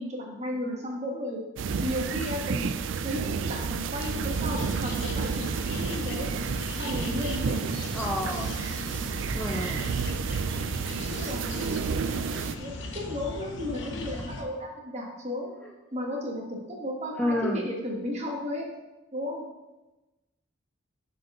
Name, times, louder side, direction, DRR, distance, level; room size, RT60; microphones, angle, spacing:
voice 1, 0.0-1.4 1.8-2.7 3.0-6.3 6.7-7.6 8.3-8.4 9.5-9.6 11.1-11.7 12.2-12.3 12.6-15.5 15.9-18.7 19.1-19.5, left 1 dB, 30° right, 0 dB, 1.3 m, -34 dB
sound 1, 1.6-12.6, right 5 dB, 65° right, 0.4 m, -31 dB
sound 2, 4.0-14.4, left 2 dB, 60° left, 0.9 m, -38 dB
voice 2, 7.9-8.5 9.3-9.9 17.2-17.6, left 1 dB, 5° left, 0 dB, 0.4 m, -29 dB
6.6 x 4.3 x 5.4 m, 1.1 s
head